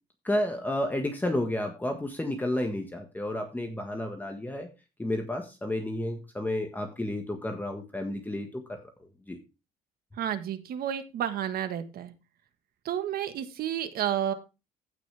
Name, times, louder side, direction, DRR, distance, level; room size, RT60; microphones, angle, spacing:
voice 1, 0.2-4.7 5.0-8.8 9.3-9.4, left 1 dB, 10° left, 4 dB, 1.5 m, -31 dB
voice 2, 10.2-12.1 12.8-14.3, right 10 dB, 65° right, 10 dB, 1.5 m, -31 dB
15.0 x 6.2 x 3.4 m, 0.28 s
cardioid pair, 110°, 17 cm